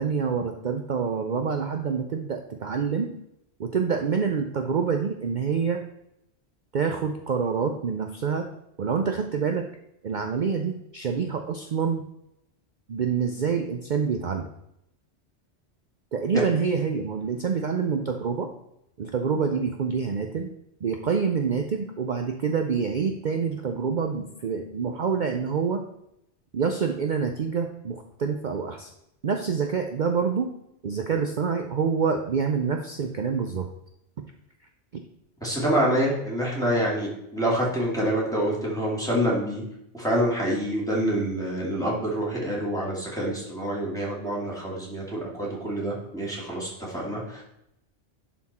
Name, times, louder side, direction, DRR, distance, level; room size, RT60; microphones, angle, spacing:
voice 1, 0.0-3.1 3.6-5.8 6.7-8.5 8.8-9.7 10.0-12.0 12.9-14.5 16.1-18.5 19.0-20.5 20.8-25.8 26.5-28.9 29.2-30.5 30.8-33.7, right 6 dB, 50° right, 4 dB, 0.6 m, -26 dB
voice 2, 35.4-39.6 39.9-47.4, equal, 5° left, -5 dB, 2.4 m, -27 dB
11.0 x 4.4 x 4.2 m, 0.80 s
omnidirectional pair, 1.2 m